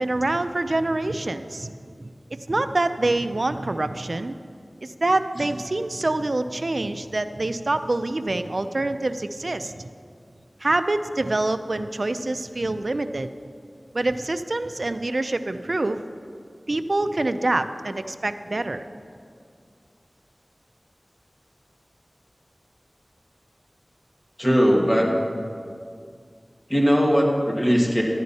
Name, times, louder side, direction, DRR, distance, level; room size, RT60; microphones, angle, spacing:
voice 1, 0.0-1.7 2.3-4.3 4.8-9.9 10.6-13.3 13.9-16.0 16.7-18.8, right 2 dB, 60° right, 10 dB, 0.4 m, -25 dB
voice 2, 24.4-25.1 26.7-28.0, equal, 20° left, -1 dB, 1.8 m, -19 dB
10.5 x 10.5 x 4.2 m, 2.2 s
wide cardioid pair, 50°, 0 cm